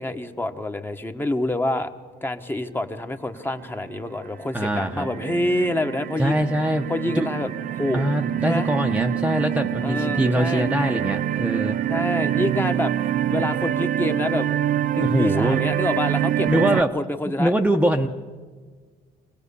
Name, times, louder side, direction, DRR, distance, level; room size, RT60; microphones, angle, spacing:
voice 1, 0.0-1.9 2.2-6.5 6.9-8.0 8.4-8.7 9.8-10.7 11.9-12.9 13.3-17.5, left 1 dB, 10° left, 7 dB, 1.1 m, -27 dB
sound 1, 3.6-4.1 4.5-16.8, right 11 dB, 55° right, 0.6 m, -26 dB
voice 2, 4.5-5.1 6.2-6.9 7.1-7.3 7.9-11.8 15.0-15.6 16.5-16.9 17.3-18.1, right 1 dB, 5° right, 3 dB, 0.9 m, -23 dB
24.5 x 17.5 x 6.9 m, 1.5 s
cardioid pair, 110°, 17 cm